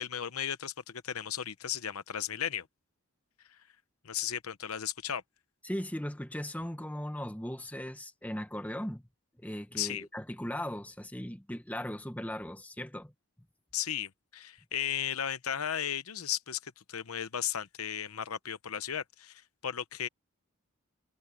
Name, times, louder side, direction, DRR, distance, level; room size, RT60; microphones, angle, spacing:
voice 1, 0.0-2.7 3.5-3.6 4.0-5.2 9.7-10.1 13.7-20.1, left 9 dB, 90° left, 0.9 m, -35 dB
voice 2, 5.6-9.0 9.4-13.1, equal, 5° left, 1.2 m, -38 dB
head